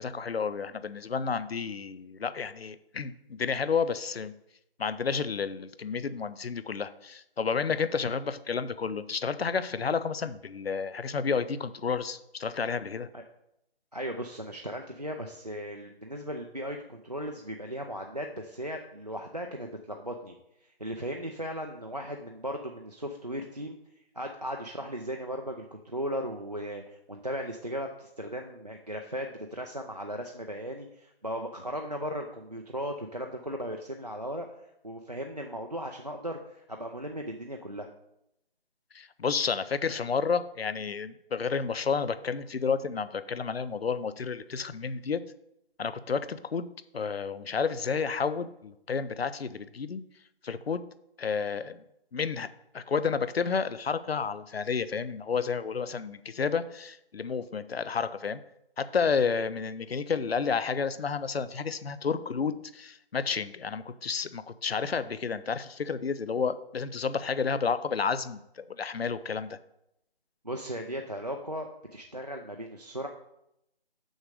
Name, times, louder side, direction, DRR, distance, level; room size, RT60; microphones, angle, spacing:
voice 1, 0.0-4.3 4.8-13.1 38.9-45.2 45.8-46.7 46.9-50.0 50.4-50.8 51.2-51.8 52.1-52.5 52.7-58.4 58.8-69.6, left 5 dB, 70° left, 14 dB, 0.6 m, -31 dB
voice 2, 13.9-23.8 24.1-34.5 34.8-37.9 70.4-73.1, equal, 40° right, 3 dB, 0.5 m, -37 dB
6.4 x 6.3 x 4.9 m, 0.82 s
figure-of-eight pair, 180°, 32 cm